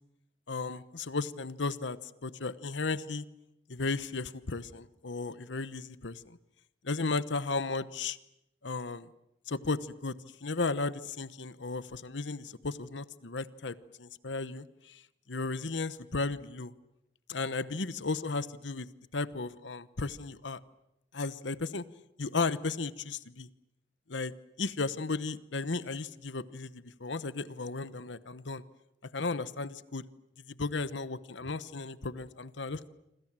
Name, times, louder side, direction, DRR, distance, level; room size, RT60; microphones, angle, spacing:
voice 1, 0.5-3.2 3.7-6.4 6.8-8.2 8.6-9.1 9.5-10.1 10.4-15.0 15.3-16.7 17.3-18.9 19.1-20.6 21.1-21.8 22.2-23.5 24.1-24.3 24.6-28.6 29.0-30.0 30.5-32.9, left 3 dB, 80° left, 15 dB, 1.0 m, -35 dB
27.5 x 26.5 x 7.6 m, 0.86 s
head